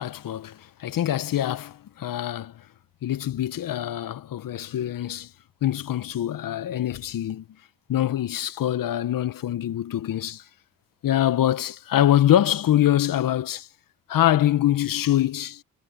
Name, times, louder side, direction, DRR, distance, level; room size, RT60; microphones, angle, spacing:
voice 1, 0.0-2.5 3.0-5.3 5.6-7.4 7.9-10.4 11.0-13.7 14.1-15.6, left 12 dB, 60° left, 1.4 m, -24 dB
hypercardioid pair, 50°, 37 cm